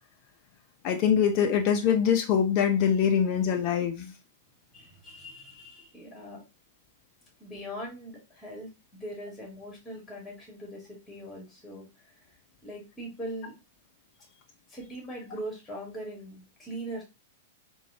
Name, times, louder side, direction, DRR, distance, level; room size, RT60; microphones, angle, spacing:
voice 1, 0.8-4.1, left 8 dB, 40° left, 0.5 m, -24 dB
voice 2, 4.7-6.4 7.4-11.9 12.6-13.5 14.7-17.0, right 1 dB, 10° left, 1.9 m, -41 dB
4.0 x 2.3 x 2.7 m
figure-of-eight pair, 100°, 0 cm